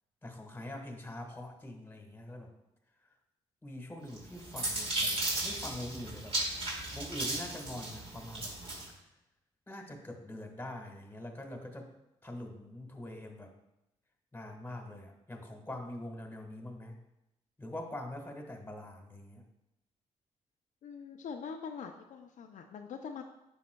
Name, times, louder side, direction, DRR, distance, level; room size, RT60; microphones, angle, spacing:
voice 1, 0.2-2.5 3.6-6.4 6.9-8.5 9.7-11.9 12.2-13.5 14.3-17.0 17.6-19.4, left 1 dB, 15° left, 3 dB, 1.5 m, -44 dB
sound 1, 4.1-8.9, right 1 dB, 45° right, 2.4 m, -35 dB
voice 2, 20.8-23.2, left 6 dB, 65° left, 4 dB, 0.5 m, -43 dB
9.5 x 5.5 x 2.3 m, 0.88 s
supercardioid pair, 55°, 14 cm